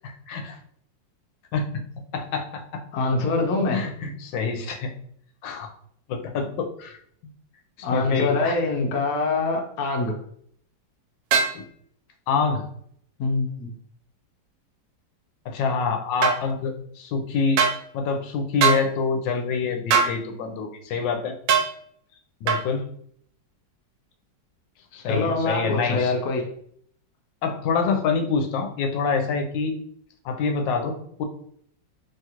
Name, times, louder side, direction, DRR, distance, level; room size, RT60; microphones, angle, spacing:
voice 1, 0.0-0.6 1.5-1.7 2.1-2.6 3.7-4.9 5.4-5.7 6.1-7.0 7.8-8.6 11.5-11.6 12.3-12.6 15.5-17.6 17.9-21.4 22.4-22.8 24.9-26.1 27.4-29.8 30.2-31.2, left 5 dB, 85° left, 4 dB, 1.3 m, -26 dB
voice 2, 2.9-3.8 7.8-10.1 13.2-13.7 25.1-26.4, left 3 dB, 65° left, 1 dB, 1.0 m, -24 dB
sound 1, 11.3-11.6 16.2-16.4 17.6-17.8 18.6-18.8 19.9-20.2 21.5-21.7 22.5-22.6, right 6 dB, 80° right, 1.3 m, -20 dB
3.1 x 2.4 x 2.8 m, 0.64 s
omnidirectional pair, 2.0 m